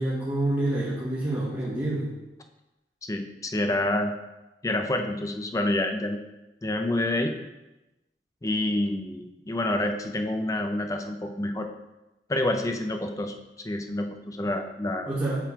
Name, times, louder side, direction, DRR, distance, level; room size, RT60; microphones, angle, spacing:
voice 1, 0.0-2.1 15.0-15.4, right 1 dB, 20° right, -10 dB, 1.5 m, -27 dB
voice 2, 3.0-4.1 4.6-6.2 6.6-7.4 8.4-11.7 12.3-13.3 13.6-15.1, left 1 dB, 20° left, 5 dB, 0.5 m, -28 dB
7.4 x 3.7 x 4.8 m, 1.0 s
head